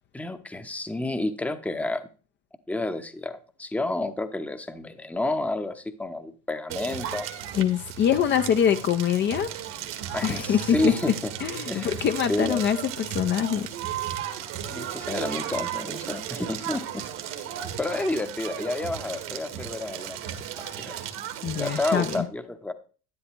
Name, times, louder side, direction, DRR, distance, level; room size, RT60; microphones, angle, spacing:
voice 1, 0.1-2.1 2.7-7.3 10.1-11.3 11.7-11.9 12.3-12.6 14.7-17.1 17.8-20.2 20.6-21.0 21.6-22.7, left 2 dB, 5° left, 0.8 m, -30 dB
Crackle, 6.7-22.2, right 10 dB, 65° right, 1.7 m, -35 dB
voice 2, 7.5-9.5 10.2-11.1 11.4-13.7 21.4-22.3, left 8 dB, 40° left, 0.7 m, -24 dB
11.5 x 9.8 x 3.0 m
supercardioid pair, 105°, 30 cm